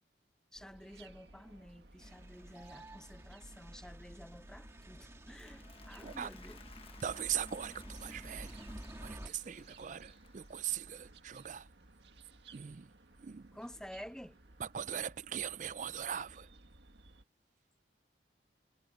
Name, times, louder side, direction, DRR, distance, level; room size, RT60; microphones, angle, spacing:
voice 1, 0.5-6.6 13.5-14.4, equal, 5° left, 0.8 m, -51 dB
sound 1, 0.5-17.2, right 2 dB, 75° right, 1.7 m, -59 dB
sound 2, 2.0-9.3, right 1 dB, 15° right, 1.7 m, -50 dB
Applause, 5.1-11.5, left 6 dB, 30° left, 1.3 m, -60 dB
voice 2, 7.0-8.6 9.0-11.7 12.5-13.5 14.6-16.5, right 9 dB, 45° right, 0.4 m, -40 dB
head